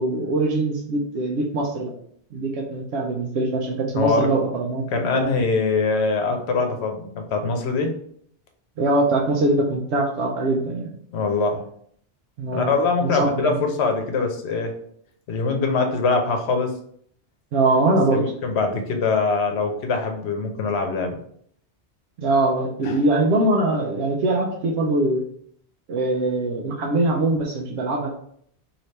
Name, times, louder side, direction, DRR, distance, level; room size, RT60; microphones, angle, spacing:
voice 1, 0.0-1.9 2.3-4.8 5.1-5.3 8.8-10.9 12.4-12.7 13.0-13.6 17.5-18.2 22.2-25.2 25.9-28.2, right 2 dB, 80° right, 0 dB, 0.9 m, -22 dB
voice 2, 3.9-4.3 4.9-7.9 11.1-11.6 12.5-14.7 15.3-16.7 18.1-21.2 22.8-23.0, left 4 dB, 70° left, 4 dB, 0.9 m, -23 dB
3.2 x 2.9 x 4.0 m, 0.65 s
omnidirectional pair, 1.1 m